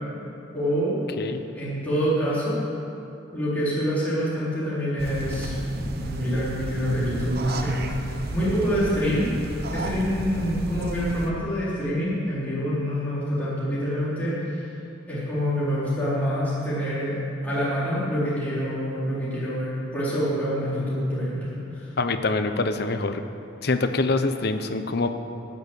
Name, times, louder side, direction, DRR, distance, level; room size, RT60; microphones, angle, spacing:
voice 1, 0.5-1.0 1.5-2.6 3.3-9.3 9.7-14.7 15.1-17.1 17.4-21.9, equal, 10° left, -11 dB, 3.9 m, -26 dB
sound 1, 5.0-11.3, right 1 dB, 50° right, 0.9 m, -33 dB
voice 2, 22.0-23.2 23.6-25.1, left 3 dB, 55° left, 8 dB, 0.8 m, -25 dB
13.5 x 9.2 x 8.1 m, 2.8 s
head